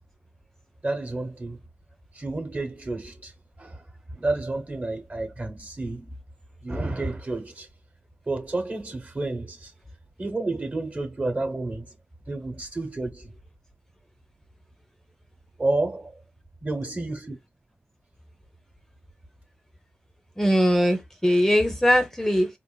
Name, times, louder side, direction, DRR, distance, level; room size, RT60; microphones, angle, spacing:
voice 1, 0.8-1.6 2.1-3.3 3.6-3.8 4.1-6.1 6.6-7.7 8.3-9.7 10.2-11.9 12.3-13.3 15.6-16.1 16.6-17.4, right 2 dB, 35° right, 1.0 m, -30 dB
voice 2, 20.4-22.5, equal, 10° left, 0.5 m, -21 dB
3.7 x 2.5 x 2.3 m
cardioid pair, 70°, 4 cm